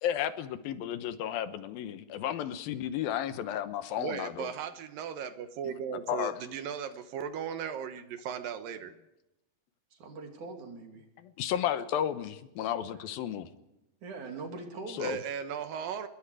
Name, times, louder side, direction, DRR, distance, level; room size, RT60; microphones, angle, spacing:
voice 1, 0.0-4.5 5.6-5.7 6.1-6.4 11.2-13.5 14.9-15.2, left 10 dB, 80° left, 11 dB, 2.8 m, -33 dB
voice 2, 4.0-8.9 15.0-16.1, right 8 dB, 75° right, 10 dB, 2.7 m, -37 dB
voice 3, 9.9-11.1 12.9-13.1 14.0-15.1, right 3 dB, 55° right, 3 dB, 4.2 m, -42 dB
26.0 x 21.0 x 4.9 m, 0.93 s
omnidirectional pair, 4.3 m